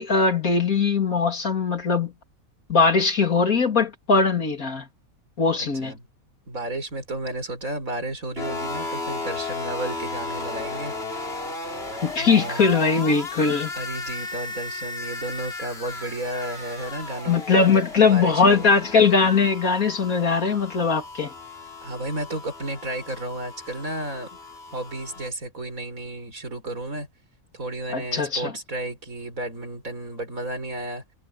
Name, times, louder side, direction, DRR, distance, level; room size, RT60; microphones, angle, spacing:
voice 1, 0.0-2.1 2.7-4.9 5.4-5.9 12.0-13.7 17.3-21.3 27.9-28.5, left 4 dB, 85° left, 3.4 m, -20 dB
voice 2, 5.6-6.1 6.5-10.9 12.2-12.8 13.8-18.7 21.8-24.3 24.7-27.1 27.5-31.0, right 1 dB, 75° right, 5.7 m, -33 dB
sound 1, 8.4-25.3, left 3 dB, 45° left, 3.4 m, -35 dB
omnidirectional pair, 1.4 m